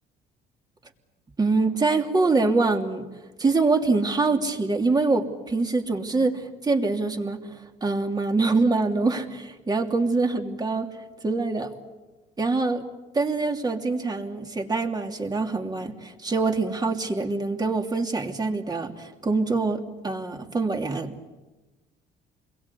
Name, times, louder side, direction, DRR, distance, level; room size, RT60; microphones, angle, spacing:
voice 1, 1.4-3.0 3.4-7.5 7.8-10.9 11.2-11.7 12.4-12.8 13.1-21.3, right 3 dB, 25° right, 4 dB, 3.0 m, -24 dB
29.0 x 22.5 x 8.5 m, 1.2 s
cardioid pair, 110°, 17 cm